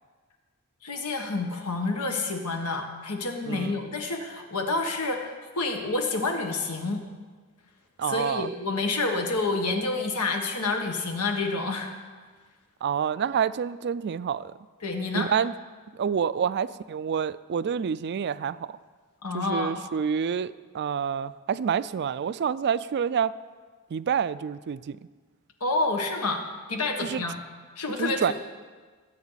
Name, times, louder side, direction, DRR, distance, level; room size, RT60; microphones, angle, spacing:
voice 1, 0.8-7.0 8.1-11.9 14.8-15.3 19.2-19.8 25.6-26.4 26.7-27.4 27.7-28.3, left 3 dB, 90° left, 3 dB, 1.7 m, -28 dB
voice 2, 3.5-3.8 8.0-8.5 12.8-14.5 15.1-15.5 15.9-18.7 19.3-23.3 23.9-25.0 27.0-27.2 28.0-28.3, right 7 dB, 50° right, 16 dB, 0.4 m, -28 dB
20.0 x 8.7 x 4.1 m, 1.5 s
head